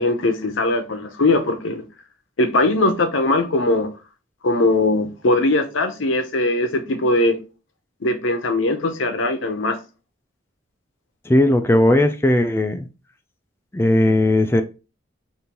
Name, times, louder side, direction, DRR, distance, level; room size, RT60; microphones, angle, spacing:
voice 1, 0.0-1.8 2.4-3.9 4.4-7.4 8.0-9.8, left 2 dB, 80° left, 0.7 m, -20 dB
voice 2, 11.3-12.9 13.7-14.6, left 1 dB, 10° left, 0.3 m, -17 dB
5.2 x 2.6 x 2.9 m
head